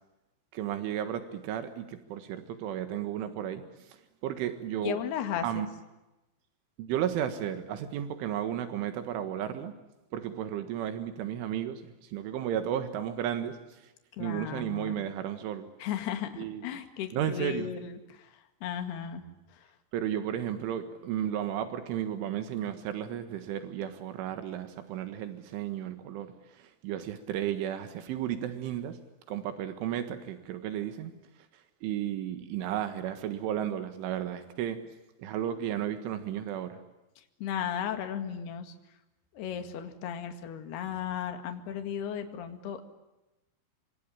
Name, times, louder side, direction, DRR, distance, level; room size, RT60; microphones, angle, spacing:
voice 1, 0.5-4.0 4.2-5.0 5.4-5.7 6.8-9.7 10.1-13.8 14.2-15.7 16.4-16.8 17.1-17.7 19.9-29.0 29.3-31.1 31.8-34.8 35.2-36.8, right 10 dB, 85° right, 9 dB, 4.1 m, -33 dB
voice 2, 4.8-5.7 14.2-15.0 15.8-18.3 18.6-19.2 37.4-38.7 39.3-42.8, left 9 dB, 60° left, 7 dB, 3.8 m, -35 dB
26.5 x 24.5 x 8.6 m, 0.99 s
omnidirectional pair, 5.5 m